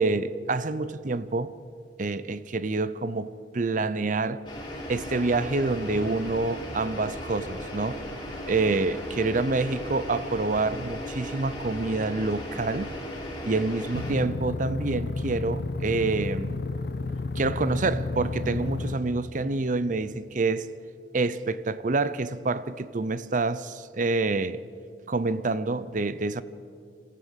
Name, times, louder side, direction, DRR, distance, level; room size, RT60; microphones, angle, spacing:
voice 1, 0.0-1.5 2.0-4.4 4.9-8.0 8.5-12.9 13.4-16.6 17.4-20.7 21.1-24.6 25.1-26.4, right 3 dB, 45° right, 0.7 m, -27 dB
sound 1, 4.4-14.1, equal, 30° left, 6.3 m, -36 dB
sound 2, 13.9-18.9, left 3 dB, 65° left, 1.0 m, -31 dB
27.0 x 15.0 x 7.4 m
head